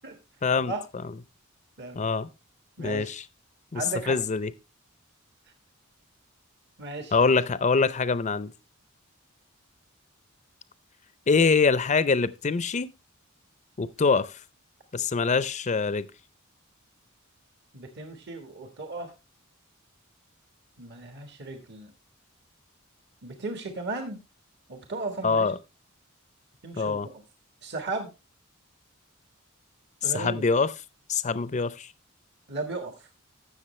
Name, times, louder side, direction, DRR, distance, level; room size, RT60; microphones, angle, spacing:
voice 1, 0.4-0.7 1.9-2.3 2.8-3.2 3.7-4.5 7.1-8.5 11.3-12.9 13.8-14.4 14.9-16.1 25.2-25.6 26.8-27.1 30.0-30.7 31.1-31.9, left 4 dB, 35° left, 0.6 m, -24 dB
voice 2, 2.8-3.1 3.7-4.2 6.8-7.2 17.7-19.1 20.8-21.9 23.2-24.2 24.7-25.5 26.6-27.2 27.6-28.1 30.0-30.4 32.5-33.1, right 2 dB, 55° right, 1.5 m, -35 dB
15.5 x 6.4 x 3.1 m
head